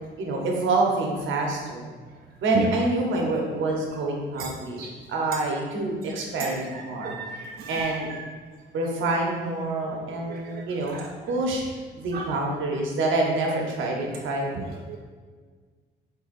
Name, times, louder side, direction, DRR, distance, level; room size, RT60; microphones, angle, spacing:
voice 1, 0.2-1.9 2.4-4.8 5.1-7.1 7.7-8.1 8.7-11.0 11.3-11.6 11.9-14.7, right 2 dB, 75° right, 0 dB, 0.9 m, -26 dB
voice 2, 7.0-7.7 10.3-10.6 10.9-11.1 12.1-12.3 14.9-15.0, right 7 dB, 50° right, 1 dB, 0.4 m, -33 dB
4.0 x 4.0 x 2.5 m, 1.5 s
cardioid pair, 90°, 20 cm